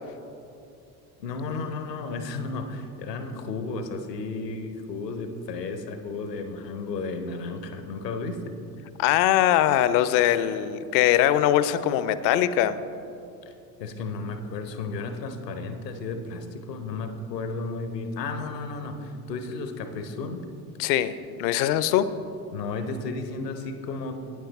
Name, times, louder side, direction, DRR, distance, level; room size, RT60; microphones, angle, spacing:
voice 1, 1.2-8.5 13.8-20.4 22.5-24.2, left 3 dB, 75° left, 8 dB, 0.9 m, -33 dB
voice 2, 9.0-12.8 20.8-21.1 21.4-22.1, left 12 dB, 45° left, 14 dB, 0.5 m, -21 dB
9.0 x 8.5 x 4.0 m, 2.7 s
figure-of-eight pair, 60°, 49 cm